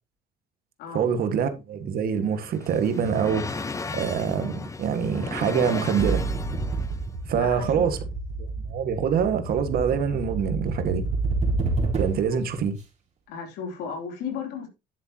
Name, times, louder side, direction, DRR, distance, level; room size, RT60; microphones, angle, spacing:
voice 1, 0.9-3.6 3.9-6.2 7.3-8.0 8.4-11.0 12.0-12.8, right 7 dB, 60° right, 1.7 m, -25 dB
sound 1, 2.0-7.1, left 4 dB, 20° left, 0.7 m, -35 dB
sound 2, 6.0-12.4, right 3 dB, 45° right, 3.9 m, -29 dB
voice 2, 7.3-7.9 12.3-12.4 13.3-14.7, left 6 dB, 85° left, 3.1 m, -34 dB
10.5 x 8.3 x 2.9 m
cardioid pair, 110°, 17 cm